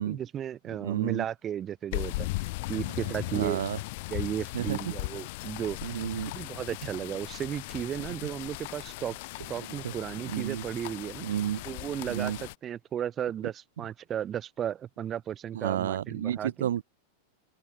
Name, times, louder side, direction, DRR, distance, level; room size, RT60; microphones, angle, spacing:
voice 1, 0.0-3.6 4.1-5.9 6.3-9.2 9.5-11.2 11.6-16.7, right 10 dB, 25° right, 3.2 m, -35 dB
voice 2, 0.8-1.2 3.3-3.8 4.5-4.8 5.8-6.3 10.3-10.6 11.2-11.6 12.1-12.4 15.5-16.8, right 11 dB, 60° right, 2.3 m, -31 dB
sound 1, 1.9-12.6, left 23 dB, 50° left, 4.1 m, -37 dB
open air
figure-of-eight pair, 90°, 0 cm